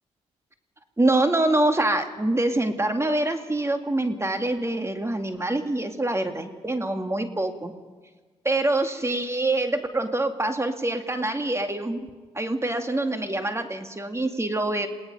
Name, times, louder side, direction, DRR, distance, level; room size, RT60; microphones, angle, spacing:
voice 1, 1.0-7.7 8.4-12.1 12.3-14.9, right 2 dB, 20° right, 6 dB, 2.2 m, -25 dB
28.0 x 18.5 x 5.5 m, 1.4 s
supercardioid pair, 45°, 14 cm